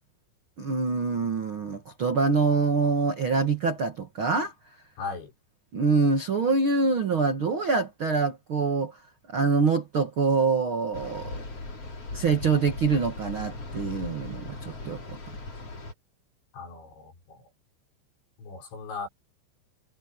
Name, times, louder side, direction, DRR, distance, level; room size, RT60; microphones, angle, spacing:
voice 1, 0.6-4.5 5.7-9.0 9.3-11.4 12.1-15.2, right 4 dB, 85° right, 1.1 m, -25 dB
voice 2, 5.0-5.3 16.5-17.4 18.4-19.1, left 4 dB, 70° left, 7.8 m, -38 dB
sound 1, 10.9-15.9, left 2 dB, 30° left, 5.2 m, -38 dB
omnidirectional pair, 5.5 m